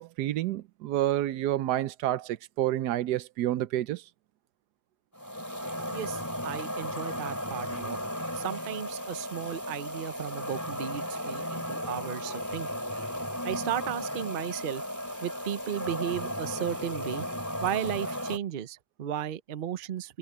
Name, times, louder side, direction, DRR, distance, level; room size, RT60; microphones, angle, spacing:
voice 1, 0.0-4.0, right 13 dB, 85° right, 1.2 m, -29 dB
sound 1, 5.2-18.4, equal, 10° left, 2.7 m, -35 dB
voice 2, 5.9-8.0 8.3-12.7 13.4-14.8 15.2-17.3 17.6-20.2, right 10 dB, 50° right, 0.6 m, -35 dB
omnidirectional pair, 1.7 m